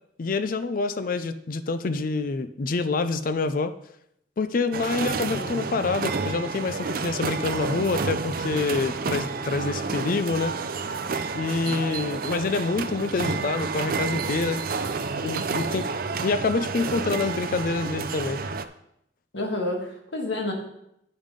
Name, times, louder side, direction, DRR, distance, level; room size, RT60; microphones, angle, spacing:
voice 1, 0.2-3.7 4.4-10.6 11.3-14.6 15.2-15.9 16.2-18.4, left 3 dB, 50° left, 12 dB, 0.4 m, -27 dB
sound 1, 4.7-18.6, right 4 dB, 50° right, 0.5 m, -30 dB
voice 2, 4.9-5.5 11.7-12.0 12.2-12.4 19.3-20.5, left 1 dB, 75° left, 1 dB, 1.9 m, -31 dB
9.0 x 5.4 x 5.1 m, 0.78 s
head